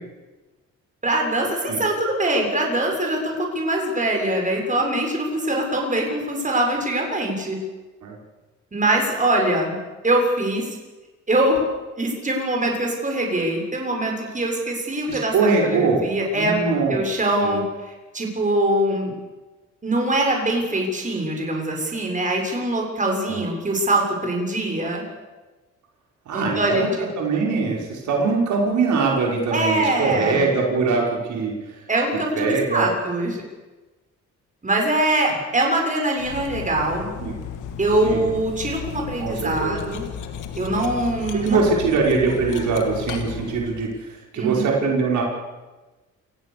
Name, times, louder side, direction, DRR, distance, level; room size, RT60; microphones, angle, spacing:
voice 1, 1.0-7.6 8.7-9.8 10.0-10.7 11.3-11.6 12.0-15.3 15.6-17.6 18.1-19.1 19.8-25.0 26.3-26.8 29.5-30.5 31.9-33.4 34.6-37.1 37.8-40.0 40.6-41.9 44.4-44.7, right 1 dB, 25° right, 1 dB, 7.0 m, -23 dB
voice 2, 15.1-16.0 16.3-17.0 17.4-17.6 23.3-23.4 26.3-26.9 27.2-31.8 32.4-32.9 37.2-37.4 38.0-38.2 39.2-39.8 41.3-45.2, right 4 dB, 70° right, -1 dB, 5.8 m, -22 dB
Cutlery silverware, 36.2-43.9, left 8 dB, 90° left, 2.5 m, -34 dB
29.0 x 17.5 x 7.0 m, 1.2 s
cardioid pair, 90°, 30 cm